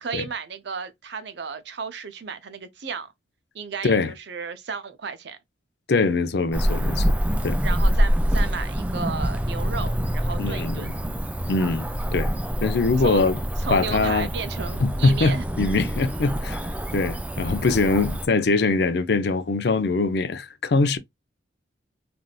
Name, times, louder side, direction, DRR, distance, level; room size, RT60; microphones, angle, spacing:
voice 1, 0.0-3.1 3.5-5.4 7.6-10.9 13.0-13.2 13.6-15.4, right 5 dB, 60° right, 0.6 m, -33 dB
voice 2, 5.9-7.1 7.4-7.6 10.4-10.9 11.5-12.3 12.6-13.4 13.7-14.3 14.8-16.6 16.9-21.0, left 3 dB, 55° left, 0.5 m, -22 dB
Cricket / Motor vehicle (road), 6.5-18.3, equal, 5° right, 0.3 m, -26 dB
3.4 x 2.6 x 2.3 m
head